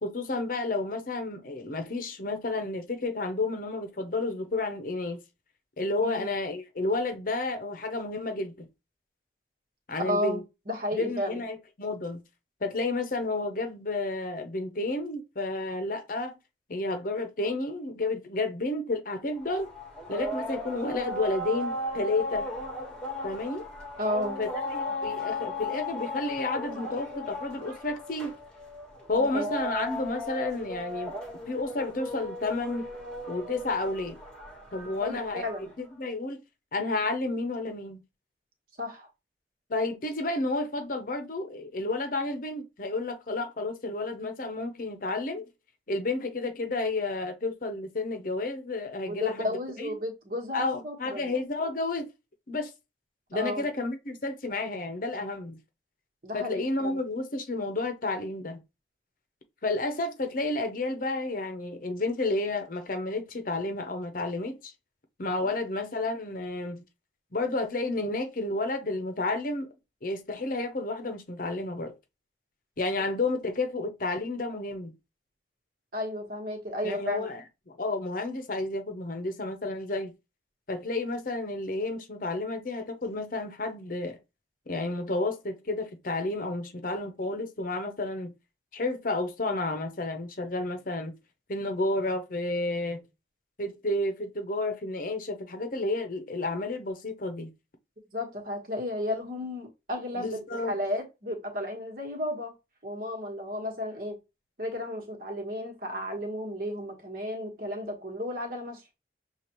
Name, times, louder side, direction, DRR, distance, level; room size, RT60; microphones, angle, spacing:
voice 1, 0.0-5.2 5.8-8.7 9.9-10.4 10.9-12.2 12.6-16.4 16.7-19.7 20.1-22.5 23.2-23.7 24.4-28.4 29.1-31.1 31.5-32.9 33.3-34.2 34.7-36.4 36.7-38.0 39.7-45.4 45.9-49.9 50.5-52.1 52.5-52.7 53.3-55.6 56.3-58.6 59.6-64.7 65.2-66.8 67.3-69.7 70.0-71.9 72.8-74.9 76.8-77.4 77.7-80.1 80.7-84.2 84.7-88.3 88.7-91.1 91.5-93.0 93.6-97.5 100.1-100.8, left 2 dB, 50° left, 0.7 m, -31 dB
voice 2, 10.0-10.4 10.7-11.4 24.0-24.4 29.1-29.5 35.0-35.7 38.8-39.1 49.1-51.3 53.3-53.7 56.2-57.0 65.4-65.6 75.9-77.3 98.1-102.5 102.8-104.2 104.6-108.8, left 1 dB, 50° right, 1.4 m, -33 dB
sound 1, 19.4-35.7, left 1 dB, 5° left, 1.2 m, -36 dB
6.7 x 2.4 x 3.0 m
head